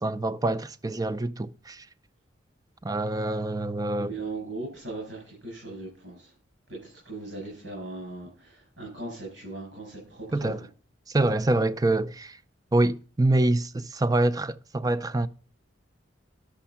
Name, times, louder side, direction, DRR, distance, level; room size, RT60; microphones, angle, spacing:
voice 1, 0.0-1.9 2.8-4.1 10.3-10.6 11.1-12.4 12.7-15.3, right 2 dB, 20° right, 0.5 m, -25 dB
voice 2, 3.9-6.3 6.7-10.7, right 2 dB, 75° right, 7.1 m, -39 dB
11.5 x 7.2 x 5.8 m
head